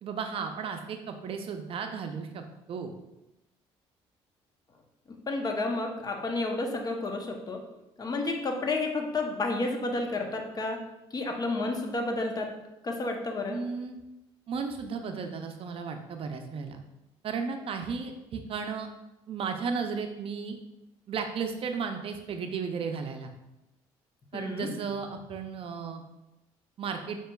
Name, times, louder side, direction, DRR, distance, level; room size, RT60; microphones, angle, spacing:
voice 1, 0.0-2.4 2.7-2.9 13.5-14.0 14.5-16.8 17.2-18.9 19.3-20.5 21.1-23.3 24.3-26.0 26.8-27.2, right 5 dB, 55° right, 5 dB, 0.5 m, -34 dB
voice 2, 5.3-7.6 8.0-10.8 11.1-12.5 12.8-13.6 24.3-24.7, left 2 dB, 35° left, 3 dB, 0.7 m, -31 dB
5.5 x 2.9 x 2.3 m, 0.95 s
supercardioid pair, 80°, 12 cm